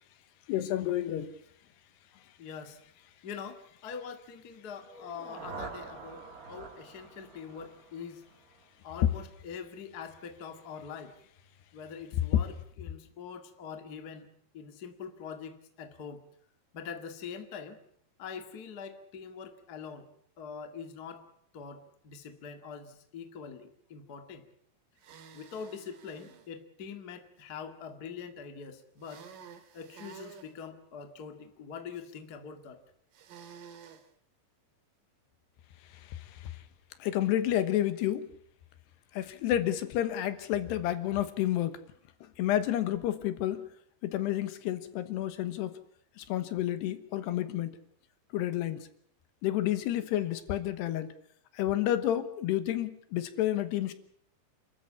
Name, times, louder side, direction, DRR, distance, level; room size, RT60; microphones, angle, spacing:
voice 1, 0.5-1.3 36.0-36.6 37.0-38.3 39.1-41.8 42.4-43.7 44.0-45.8 46.2-47.7 48.3-48.9 49.4-51.1 51.5-53.9, left 12 dB, 80° left, 3.3 m, -30 dB
voice 2, 2.4-2.8 3.2-6.2 6.5-8.2 8.8-11.1 11.7-14.3 14.5-16.2 16.7-17.8 18.2-20.1 20.4-21.2 21.5-24.5 25.3-29.2 29.7-32.8, left 6 dB, 40° left, 1.5 m, -44 dB
sound 1, 4.8-8.8, right 4 dB, 80° right, 0.8 m, -46 dB
sound 2, 25.0-26.5 29.0-30.5 33.1-34.1, right 7 dB, 60° right, 3.1 m, -51 dB
28.5 x 13.5 x 8.5 m
omnidirectional pair, 4.9 m